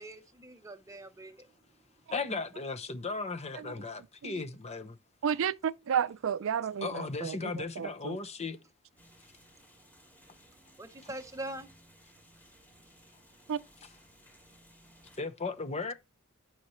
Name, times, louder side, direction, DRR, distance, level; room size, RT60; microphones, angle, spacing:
voice 1, 0.0-1.5 10.8-11.7, right 1 dB, 15° right, 0.9 m, -43 dB
voice 2, 2.1-5.0 5.3-5.4 6.8-8.6 13.8-13.9 15.2-15.9, left 4 dB, 30° left, 0.8 m, -36 dB
voice 3, 5.2-8.2 13.5-13.6, right 8 dB, 65° right, 0.4 m, -32 dB
sound 1, 9.0-15.2, equal, 10° left, 2.7 m, -60 dB
11.5 x 5.7 x 3.1 m
head